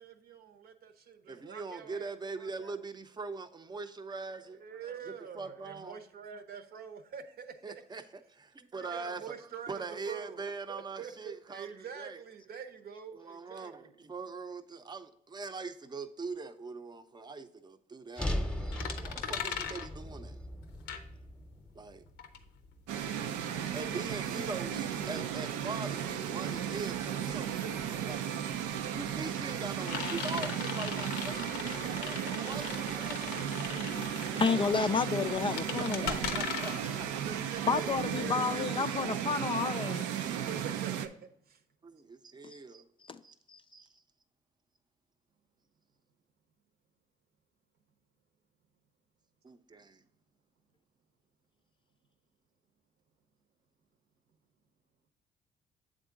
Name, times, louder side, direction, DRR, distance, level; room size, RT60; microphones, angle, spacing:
voice 1, 0.0-2.8 4.6-8.0 8.8-14.0 31.5-32.7 34.5-34.6 37.2-39.3 40.4-41.6 49.7-49.8, right 7 dB, 65° right, 0.8 m, -46 dB
voice 2, 1.3-4.6 4.9-6.0 7.6-9.4 9.7-12.2 13.1-20.4 21.7-22.0 23.7-28.3 28.9-33.4 34.4-34.6 35.5-37.1 41.8-42.9 43.2-43.4 43.7-44.0 49.4-50.0, right 4 dB, 25° right, 0.6 m, -42 dB
sound 1, 18.2-22.4, left 1 dB, 5° left, 0.8 m, -38 dB
sound 2, 18.7-21.6 21.9-38.3, left 7 dB, 90° left, 0.6 m, -40 dB
sound 3, 22.9-41.1, right 9 dB, 90° right, 0.4 m, -35 dB
voice 3, 34.4-36.2 37.7-40.1 42.4-42.6 43.0-43.2 43.5-43.6, left 5 dB, 30° left, 0.3 m, -30 dB
7.7 x 3.7 x 3.7 m
supercardioid pair, 70°, 17 cm